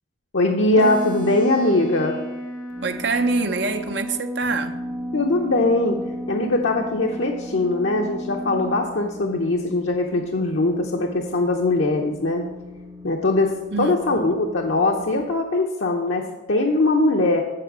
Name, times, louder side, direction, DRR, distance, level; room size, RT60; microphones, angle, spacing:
voice 1, 0.3-2.2 5.1-6.0 6.3-12.4 13.0-13.5 13.8-17.4, left 2 dB, 75° left, 0.8 m, -21 dB
sound 1, 0.7-8.8, equal, 40° right, 2.1 m, -32 dB
sound 2, 2.7-3.9 4.4-15.2, left 3 dB, 15° right, 1.2 m, -42 dB
voice 2, 2.8-4.8 13.7-14.4, right 3 dB, 65° right, 0.8 m, -25 dB
7.7 x 7.0 x 6.1 m
head